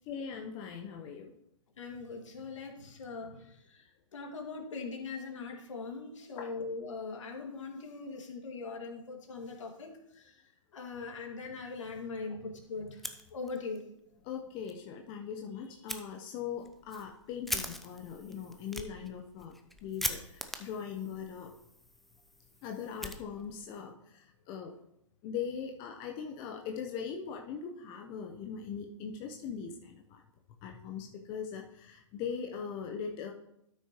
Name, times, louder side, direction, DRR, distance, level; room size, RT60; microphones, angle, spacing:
voice 1, 0.1-1.3 6.4-6.5 14.2-19.5 19.8-21.5 22.6-24.7 25.2-30.2 30.6-33.3, left 7 dB, 30° left, 2 dB, 0.8 m, -40 dB
voice 2, 1.8-3.8 4.1-10.3 10.7-13.0 13.3-13.8, left 4 dB, 65° left, 2 dB, 2.2 m, -41 dB
Fire, 12.9-13.8 14.1-14.2 14.6-14.7 15.9-16.0 16.6-23.7, left 1 dB, ahead, 0.5 m, -42 dB
12.5 x 6.3 x 3.0 m, 0.80 s
hypercardioid pair, 125°, 17 cm